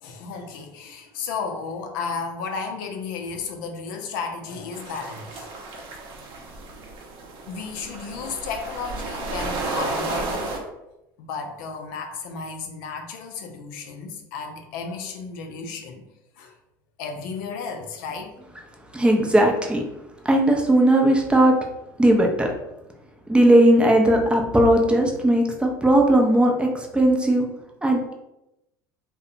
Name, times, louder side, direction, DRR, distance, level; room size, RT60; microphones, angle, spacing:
voice 1, 0.0-5.5 7.5-10.7 11.2-16.0 16.4-16.5 17.0-18.3, left 5 dB, 70° left, 3 dB, 0.5 m, -33 dB
sound 1, 4.7-10.6, right 3 dB, 50° right, 0.7 m, -32 dB
voice 2, 18.9-19.8 20.2-21.5 22.0-22.5 23.3-27.5 27.8-28.1, right 1 dB, 10° right, 1 dB, 0.5 m, -18 dB
2.7 x 2.1 x 2.6 m, 0.90 s
hypercardioid pair, 85°, 11 cm